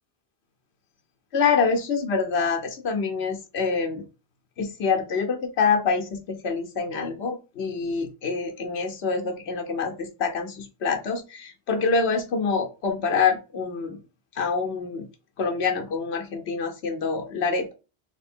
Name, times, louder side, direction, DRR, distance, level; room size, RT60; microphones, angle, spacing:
voice 1, 1.3-4.0 4.6-14.0 14.4-15.1 15.4-17.7, left 5 dB, 85° left, 4 dB, 1.1 m, -26 dB
3.2 x 3.1 x 4.3 m, 0.31 s
omnidirectional pair, 1.1 m